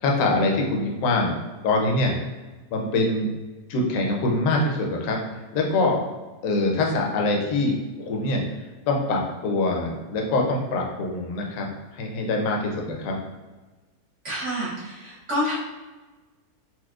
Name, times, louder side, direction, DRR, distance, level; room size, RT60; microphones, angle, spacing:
voice 1, 0.0-1.4 1.6-2.2 2.7-3.3 3.7-6.0 6.4-8.4 8.9-13.2, left 2 dB, 65° left, 0 dB, 0.9 m, -24 dB
voice 2, 14.2-15.6, equal, 60° right, -6 dB, 0.8 m, -28 dB
4.2 x 2.1 x 2.3 m, 1.2 s
omnidirectional pair, 1.8 m